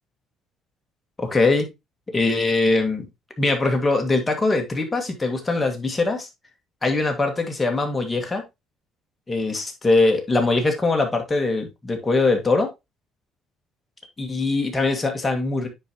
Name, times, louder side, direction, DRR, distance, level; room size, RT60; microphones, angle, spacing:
voice 1, 1.2-1.7 2.1-3.1 3.4-6.3 6.8-8.4 9.3-12.7 14.2-15.7, left 3 dB, 15° left, 3 dB, 2.0 m, -22 dB
9.4 x 4.7 x 2.9 m, 0.22 s
cardioid pair, 110°, 0 cm